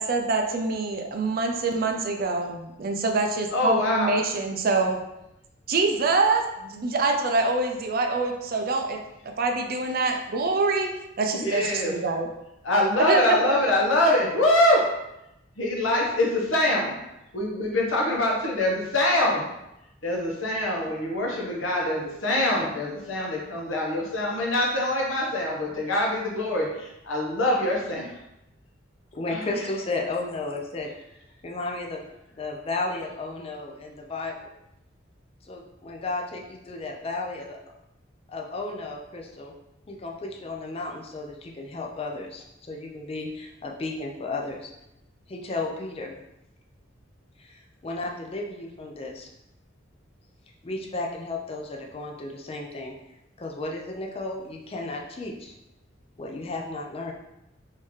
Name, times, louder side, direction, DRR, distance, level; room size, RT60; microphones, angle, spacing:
voice 1, 0.0-5.0 5.7-9.0 9.4-10.9 11.2-12.3 13.1-13.6, right 3 dB, 50° right, 4 dB, 0.5 m, -25 dB
voice 2, 3.5-4.2 11.3-11.9 12.6-14.8 15.6-17.0 17.3-19.5 20.0-28.2 29.3-29.6, left 1 dB, 90° left, -2 dB, 1.0 m, -24 dB
voice 3, 29.1-30.9 31.4-32.0 32.4-34.5 35.4-37.6 38.3-39.5 39.9-44.7 45.3-46.1 47.4-49.3 50.6-52.9 53.4-55.5 56.2-57.1, left 2 dB, 30° left, 0 dB, 0.4 m, -33 dB
3.7 x 2.7 x 3.1 m, 0.87 s
head